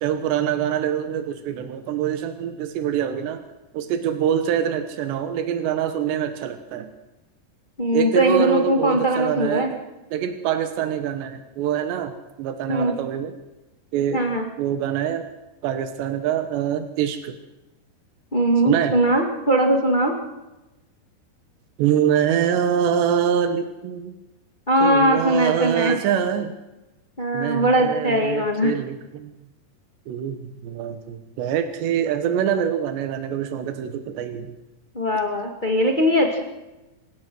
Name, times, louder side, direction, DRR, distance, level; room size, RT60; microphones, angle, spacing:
voice 1, 0.0-3.4 3.7-6.9 7.9-9.8 10.1-12.1 12.4-13.3 13.9-14.2 14.6-15.2 15.6-17.4 18.6-18.9 21.8-24.1 24.8-26.6 27.3-29.3 30.1-34.5, right 9 dB, 90° right, 8 dB, 3.5 m, -24 dB
voice 2, 7.8-9.7 12.7-12.9 14.1-14.4 18.3-20.1 24.7-26.0 27.2-28.7 34.9-36.4, right 1 dB, 60° left, 2 dB, 0.5 m, -20 dB
27.0 x 16.5 x 6.2 m, 1.0 s
omnidirectional pair, 4.8 m